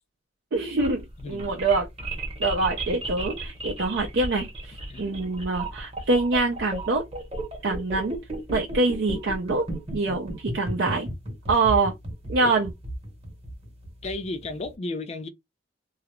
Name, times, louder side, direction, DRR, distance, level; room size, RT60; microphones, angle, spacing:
voice 1, 0.5-1.9 2.4-7.0 7.6-8.2 8.5-9.7 9.9-11.1 11.5-11.9 12.3-12.7, right 3 dB, 60° right, 0.5 m, -25 dB
sound 1, 0.6-14.7, right 1 dB, 30° right, 0.9 m, -34 dB
voice 2, 1.2-1.5 4.9-5.1 12.4-12.5 14.0-15.3, left 2 dB, 35° left, 0.4 m, -33 dB
2.3 x 2.0 x 2.9 m
head